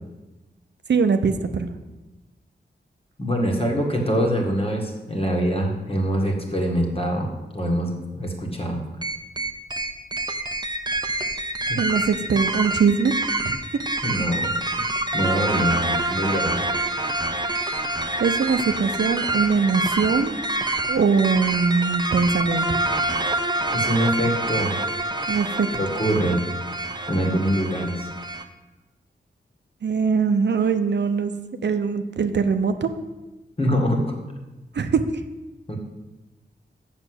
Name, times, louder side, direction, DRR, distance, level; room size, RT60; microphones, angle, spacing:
voice 1, 0.9-1.7 11.8-13.2 13.4-13.6 18.2-20.3 20.9-22.8 25.3-25.7 29.8-31.3 31.6-32.9 34.7-35.0, right 5 dB, 70° right, 8 dB, 0.7 m, -21 dB
voice 2, 3.2-7.3 7.5-8.8 11.7-11.8 14.0-14.8 15.1-16.7 23.7-24.7 25.7-26.4 27.1-28.1 33.6-34.1 35.7-35.8, equal, 30° left, 0 dB, 1.9 m, -24 dB
sound 1, 9.0-28.4, right 2 dB, 25° right, 0.7 m, -26 dB
6.9 x 6.7 x 7.9 m, 1.1 s
wide cardioid pair, 120°, 19 cm